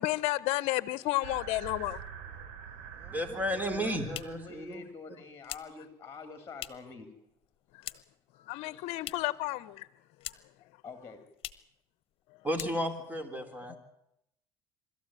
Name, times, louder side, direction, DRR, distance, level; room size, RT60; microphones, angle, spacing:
voice 1, 0.0-2.0 8.4-9.9, left 18 dB, 70° left, 0.8 m, -31 dB
sound 1, 1.2-4.7, right 8 dB, 85° right, 3.0 m, -46 dB
voice 2, 3.0-4.8 12.4-13.8, equal, 15° right, 3.8 m, -33 dB
sound 2, 3.6-7.0 7.3-8.3 8.5-9.5 9.7-10.7 10.9-11.0 11.3-11.8 12.1-12.2 12.5-13.1, left 13 dB, 55° left, 1.1 m, -45 dB
voice 3, 4.1-7.1 10.8-11.2, left 4 dB, 25° left, 3.4 m, -46 dB
24.5 x 13.5 x 9.0 m
supercardioid pair, 85°, 12 cm